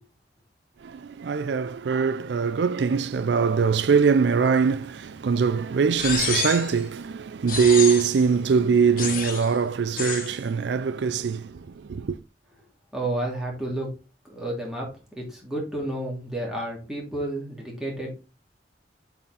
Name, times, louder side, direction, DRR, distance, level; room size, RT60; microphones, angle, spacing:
voice 1, 0.8-12.2, right 6 dB, 80° right, 0.4 m, -22 dB
sound 1, 6.0-6.8 7.5-8.2 9.0-9.5 10.0-10.3, left 5 dB, 50° left, 1.9 m, -29 dB
voice 2, 12.9-13.9 14.2-18.1, right 1 dB, 5° right, 2.5 m, -31 dB
7.5 x 4.3 x 4.0 m
head